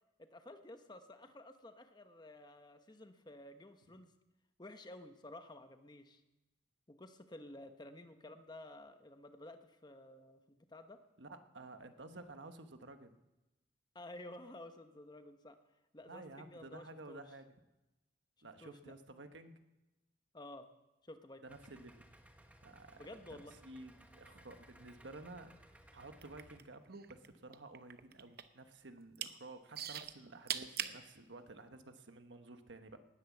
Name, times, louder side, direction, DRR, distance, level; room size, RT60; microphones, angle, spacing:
voice 1, 0.2-4.1 4.6-6.2 6.9-11.0 13.9-15.6 15.9-17.2 18.6-18.9 20.3-20.7 21.0-21.4 23.0-23.5, left 1 dB, 25° left, 7 dB, 1.0 m, -52 dB
voice 2, 11.2-13.2 16.1-17.5 18.4-19.6 21.4-21.9 22.6-25.6 25.9-33.0, right 2 dB, 75° right, 8 dB, 1.2 m, -53 dB
Idling, 21.5-26.6, right 1 dB, 10° right, 1.3 m, -61 dB
sound 1, 26.1-27.3 27.5-28.6 29.0-29.3 29.8-31.0 31.7-31.8, right 10 dB, 55° right, 0.8 m, -40 dB
19.0 x 10.0 x 7.2 m, 1.0 s
head